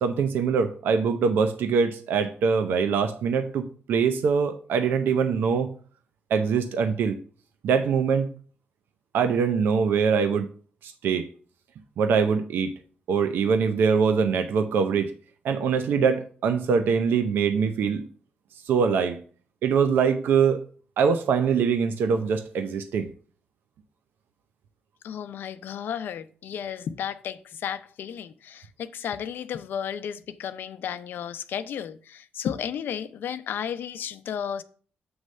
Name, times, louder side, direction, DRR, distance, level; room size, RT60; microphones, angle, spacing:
voice 1, 0.0-5.7 6.3-7.2 7.6-8.3 9.1-10.5 10.8-11.3 12.0-12.7 13.1-15.1 15.4-18.0 18.6-19.2 19.6-20.6 21.0-23.1, right 6 dB, 80° right, 0.6 m, -23 dB
voice 2, 25.0-34.6, left 8 dB, 75° left, 0.5 m, -33 dB
7.8 x 3.2 x 6.3 m
cardioid pair, 85°, 3 cm